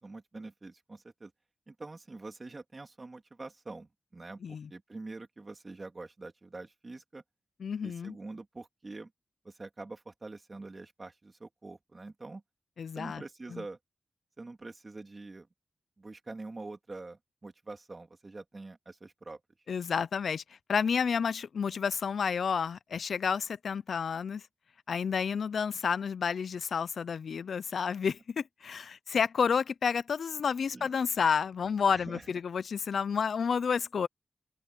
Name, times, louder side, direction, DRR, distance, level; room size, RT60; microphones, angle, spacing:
voice 1, 0.0-1.3 1.7-7.2 7.8-9.1 9.4-12.4 12.9-13.8 14.4-15.5 16.0-19.4 30.7-30.9 31.9-32.3, right 3 dB, 30° right, 3.2 m, -45 dB
voice 2, 7.6-8.1 12.8-13.2 13.5-13.6 19.7-20.4 20.7-24.4 24.9-34.1, left 6 dB, 75° left, 0.4 m, -30 dB
open air
wide cardioid pair, 140°, 0 cm